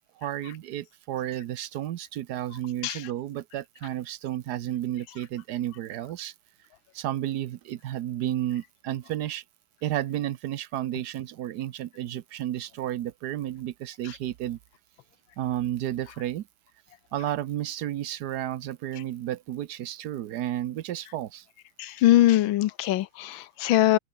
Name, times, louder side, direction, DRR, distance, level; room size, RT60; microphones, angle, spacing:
voice 1, 0.2-6.3 6.9-9.4 9.8-14.6 15.4-16.5 17.1-21.5, right 12 dB, 65° right, 1.2 m, -32 dB
voice 2, 21.8-24.0, left 14 dB, 85° left, 1.5 m, -22 dB
open air
omnidirectional pair, 2.1 m